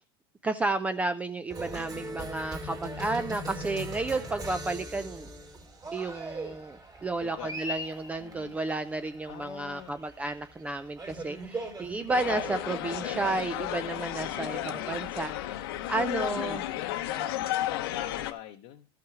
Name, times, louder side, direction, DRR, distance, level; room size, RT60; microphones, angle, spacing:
voice 1, 0.4-5.3 5.9-16.6 17.9-18.1, right 3 dB, 10° right, 11 dB, 0.4 m, -32 dB
Cheering, 1.5-16.7, right 1 dB, 25° right, 2.5 m, -41 dB
voice 2, 1.9-2.2 7.2-7.6 8.2-8.6 9.3-10.0 14.2-14.8 16.0-18.9, left 12 dB, 60° left, 3 dB, 0.8 m, -43 dB
sound 1, 12.1-18.3, left 13 dB, 80° left, 1.0 m, -33 dB
13.0 x 5.8 x 4.7 m, 0.35 s
supercardioid pair, 130°, 12 cm